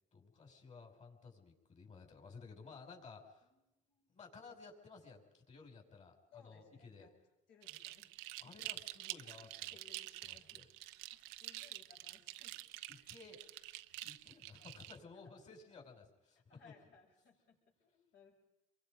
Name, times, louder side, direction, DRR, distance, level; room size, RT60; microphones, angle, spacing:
voice 1, 0.1-3.5 4.1-7.1 8.4-9.8 10.2-10.7 13.1-13.4 14.0-16.7, left 4 dB, 40° left, 4 dB, 5.8 m, -56 dB
voice 2, 6.3-7.1 7.5-9.2 9.7-12.6 13.0-13.3 13.9-14.1 15.2-15.4 16.5-18.3, left 5 dB, 65° left, -1 dB, 7.3 m, -65 dB
sound 1, 7.6-15.0, right 18 dB, 85° right, 0.8 m, -48 dB
29.0 x 23.5 x 5.3 m, 0.94 s
cardioid pair, 100°, 19 cm